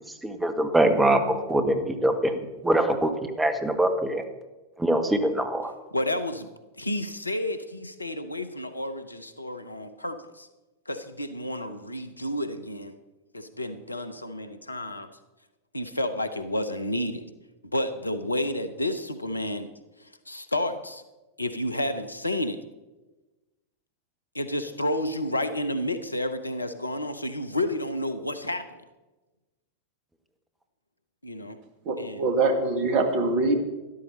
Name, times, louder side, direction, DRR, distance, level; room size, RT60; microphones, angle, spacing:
voice 1, 0.2-3.1 3.4-4.2 4.8-5.7, right 1 dB, 10° right, 6 dB, 1.4 m, -23 dB
voice 2, 5.9-6.5 6.8-10.5 10.9-13.0 13.3-15.1 15.7-17.2 17.7-19.7 20.3-21.0 21.4-22.6 24.3-28.6 31.2-31.6 32.0-32.3, left 1 dB, 85° left, 10 dB, 0.8 m, -30 dB
voice 3, 31.8-33.5, right 3 dB, 45° right, 6 dB, 1.7 m, -24 dB
12.5 x 11.5 x 4.3 m, 1.1 s
figure-of-eight pair, 90°, 0 cm